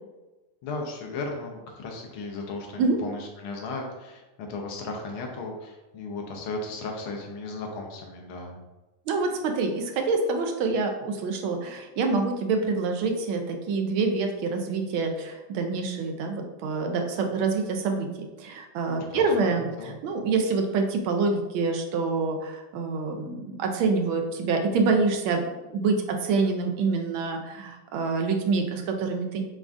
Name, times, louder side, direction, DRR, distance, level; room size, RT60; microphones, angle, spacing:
voice 1, 0.6-8.6 19.1-19.3 19.5-20.0, left 3 dB, 85° left, 1 dB, 1.6 m, -36 dB
voice 2, 9.1-25.4 25.7-29.4, right 4 dB, 85° right, 4 dB, 1.4 m, -26 dB
7.0 x 2.6 x 2.4 m, 1.1 s
omnidirectional pair, 2.2 m